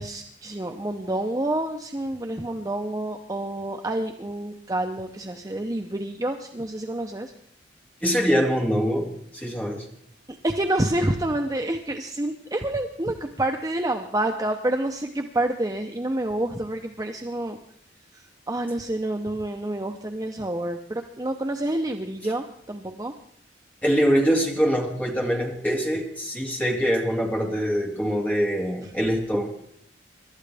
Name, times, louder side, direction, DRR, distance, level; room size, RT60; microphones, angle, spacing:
voice 1, 0.0-7.3 10.4-17.6 18.5-23.1, right 1 dB, 20° right, 4 dB, 0.7 m, -28 dB
voice 2, 8.0-9.9 22.2-22.3 23.8-29.5, equal, 10° left, -1 dB, 2.4 m, -24 dB
26.5 x 12.5 x 3.4 m, 0.67 s
head